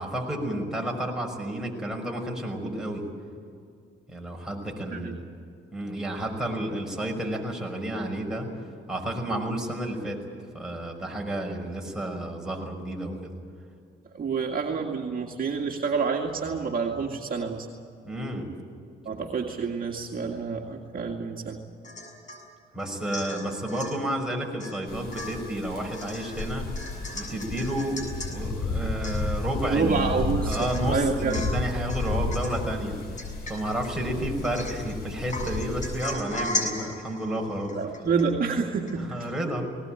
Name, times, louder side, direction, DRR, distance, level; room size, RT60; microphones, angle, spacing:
voice 1, 0.0-3.1 4.1-5.2 5.7-8.5 8.9-10.2 10.5-13.2 18.0-18.5 22.7-26.7 27.1-28.0 28.3-33.0 33.5-37.8 39.0-39.8, right 1 dB, 5° right, 0 dB, 5.8 m, -31 dB
voice 2, 14.1-17.7 19.0-21.6 29.7-31.4 37.7-39.3, right 5 dB, 45° right, 0 dB, 2.2 m, -28 dB
Domestic sounds home sounds / Chink clink / Drip, 21.8-22.4 22.8-24.0 24.6-24.8 25.1-28.3 28.7-28.8 29.0-29.5 30.0-30.1 30.5-30.9 31.3-31.6 31.9-32.6 33.2-33.9 34.4-34.9 35.3-38.6 38.9-39.0, left 2 dB, 40° left, 7.3 m, -37 dB
sound 1, 24.9-36.1, left 3 dB, 55° left, 4.6 m, -33 dB
20.5 x 19.5 x 9.1 m, 2.3 s
cardioid pair, 90°, 20 cm